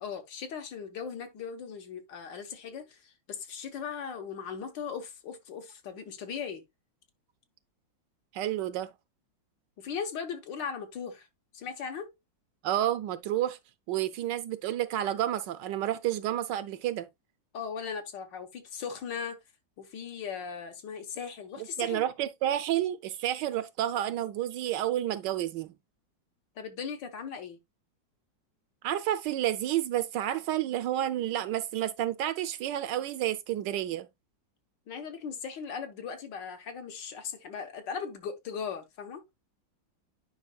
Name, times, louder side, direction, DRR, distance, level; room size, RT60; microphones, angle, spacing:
voice 1, 0.0-6.6 9.8-11.3 11.5-12.1 17.5-19.4 19.8-22.0 26.6-27.6 34.9-39.2, left 6 dB, 70° left, 1.7 m, -38 dB
voice 2, 8.3-8.9 12.6-13.6 13.9-17.1 21.6-25.7 28.8-34.1, right 12 dB, 75° right, 1.2 m, -30 dB
9.6 x 5.2 x 2.3 m
omnidirectional pair, 2.1 m